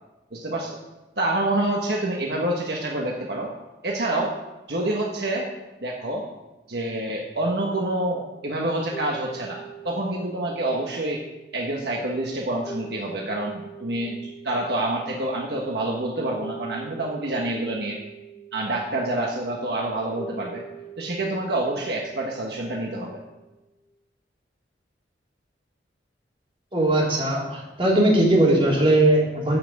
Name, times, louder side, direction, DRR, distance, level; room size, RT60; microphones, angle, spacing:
voice 1, 0.3-0.8 1.2-3.5 3.8-4.3 4.7-5.5 5.8-6.3 6.7-11.2 11.5-18.0 18.5-20.6 21.0-23.1, right 1 dB, 65° right, -1 dB, 1.4 m, -27 dB
sound 1, 8.3-23.7, right 6 dB, 20° left, 1.4 m, -44 dB
voice 2, 26.7-29.6, right 1 dB, 30° right, -4 dB, 3.3 m, -19 dB
12.5 x 5.9 x 7.9 m, 1.1 s
head